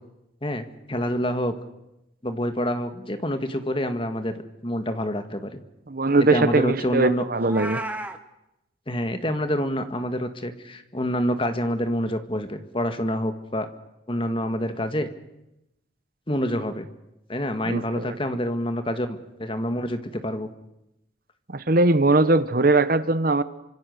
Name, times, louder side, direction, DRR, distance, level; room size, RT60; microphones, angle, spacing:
voice 1, 0.4-1.5 2.2-4.3 4.6-5.6 6.2-7.2 8.9-13.7 14.1-15.1 16.3-16.9 17.3-20.5, equal, 30° left, 8 dB, 1.8 m, -27 dB
voice 2, 5.9-7.8 17.7-18.2 21.5-23.4, right 2 dB, 50° right, 14 dB, 1.0 m, -20 dB
Meow, 7.3-8.2, right 1 dB, 10° right, 1.5 m, -32 dB
28.0 x 25.5 x 6.6 m, 0.88 s
head